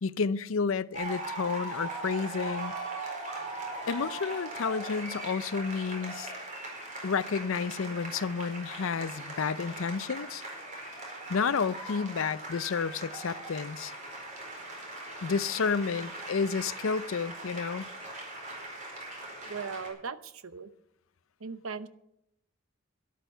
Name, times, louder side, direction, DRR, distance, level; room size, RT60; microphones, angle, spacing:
voice 1, 0.0-2.7 3.9-6.3 7.0-10.4 11.3-13.9 15.2-17.9, left 5 dB, 70° left, 0.5 m, -31 dB
sound 1, 0.9-19.9, right 2 dB, 40° right, 4.4 m, -40 dB
voice 2, 19.4-20.7 21.4-21.9, right 5 dB, 80° right, 0.8 m, -38 dB
12.5 x 11.0 x 5.6 m
head